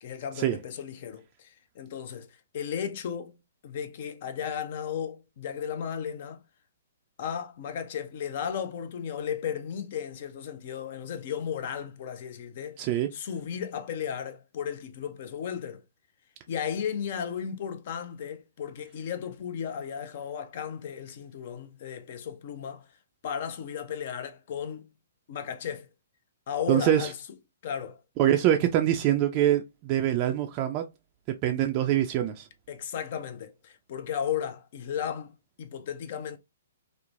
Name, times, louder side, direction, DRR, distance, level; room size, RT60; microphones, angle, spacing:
voice 1, 0.0-3.4 3.6-6.4 7.2-12.8 13.1-15.8 16.5-22.9 23.2-24.9 25.3-25.9 26.5-27.2 27.6-28.0 32.7-36.4, left 8 dB, 50° left, 0.5 m, -35 dB
voice 2, 12.8-13.1 26.7-27.1 28.2-30.8 31.4-32.5, right 11 dB, 35° right, 0.3 m, -24 dB
3.0 x 2.0 x 2.4 m
figure-of-eight pair, 120°, 0 cm